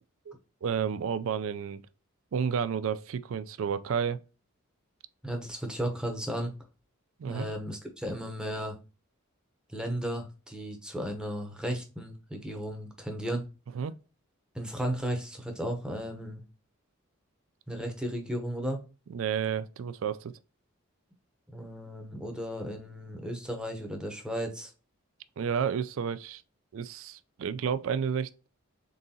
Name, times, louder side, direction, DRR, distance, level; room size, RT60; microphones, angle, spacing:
voice 1, 0.6-1.8 2.3-4.2 7.2-7.5 13.7-13.9 19.1-20.3 25.4-26.4 26.7-28.3, right 7 dB, 70° right, 0.3 m, -31 dB
voice 2, 5.2-6.5 7.3-8.8 9.7-13.4 14.5-16.4 17.7-18.8 21.5-24.7, equal, 5° right, 0.7 m, -34 dB
3.9 x 3.7 x 2.7 m
head